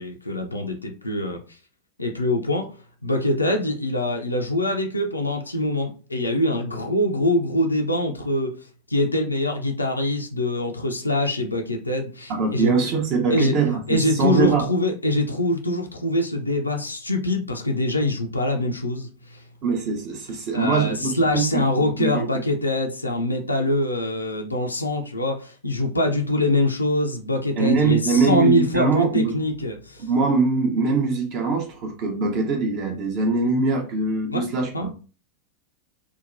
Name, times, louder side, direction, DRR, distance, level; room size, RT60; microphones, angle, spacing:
voice 1, 0.0-1.4 2.0-2.7 3.0-8.6 8.9-12.9 13.3-13.5 13.9-19.4 20.5-30.0 34.3-34.4 34.7-34.9, left 1 dB, 80° left, 0.4 m, -24 dB
voice 2, 12.3-14.6 19.6-21.5 21.8-22.2 27.6-29.3 30.0-34.9, right 4 dB, 40° right, 0.8 m, -22 dB
2.8 x 2.1 x 2.5 m
figure-of-eight pair, 90°, 0 cm